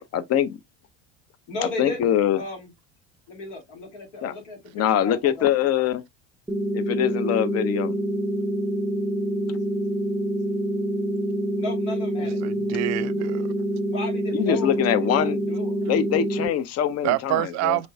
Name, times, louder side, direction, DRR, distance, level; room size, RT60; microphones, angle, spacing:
voice 1, 0.1-0.6 1.6-2.4 4.2-4.3 4.7-6.0 6.7-8.0 14.3-15.4 15.9-17.8, left 10 dB, 45° left, 0.7 m, -23 dB
voice 2, 1.5-2.7 3.3-5.5 11.6-12.4 13.9-15.8, left 2 dB, 80° left, 2.1 m, -35 dB
sound 1, 6.5-16.5, right 1 dB, 5° right, 0.6 m, -26 dB
voice 3, 12.4-13.5 17.0-17.9, right 17 dB, 50° right, 0.4 m, -26 dB
5.2 x 3.3 x 2.2 m
hypercardioid pair, 75°, 35 cm